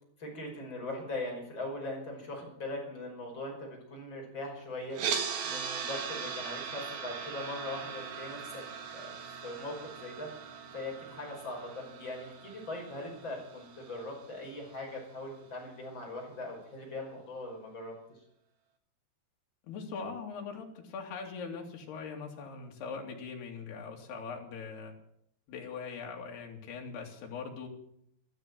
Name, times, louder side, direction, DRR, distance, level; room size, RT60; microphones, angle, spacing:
voice 1, 0.2-8.6 8.9-9.2 9.4-10.3 10.7-17.9, left 2 dB, 30° left, 0 dB, 5.9 m, -40 dB
sound 1, 4.9-15.0, right 6 dB, 70° right, 3.3 m, -40 dB
voice 2, 19.6-24.9 25.5-27.7, left 5 dB, 80° left, 1 dB, 4.6 m, -41 dB
14.0 x 13.5 x 7.6 m, 0.71 s
omnidirectional pair, 4.6 m